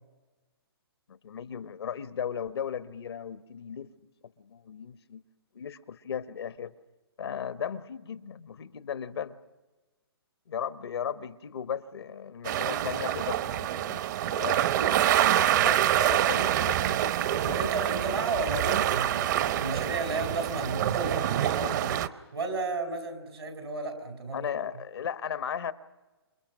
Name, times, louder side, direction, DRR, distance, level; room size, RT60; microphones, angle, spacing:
voice 1, 1.2-3.9 4.4-5.2 5.5-6.7 7.2-9.4 10.5-15.0 15.5-17.0 24.3-25.7, left 8 dB, 75° left, 12 dB, 1.1 m, -36 dB
sound 1, 12.4-22.1, right 12 dB, 45° right, 0.9 m, -26 dB
voice 2, 17.4-22.0 22.3-24.5, right 3 dB, 85° right, 5 dB, 5.2 m, -33 dB
28.0 x 27.5 x 6.2 m, 1.2 s
hypercardioid pair, 140°, 13 cm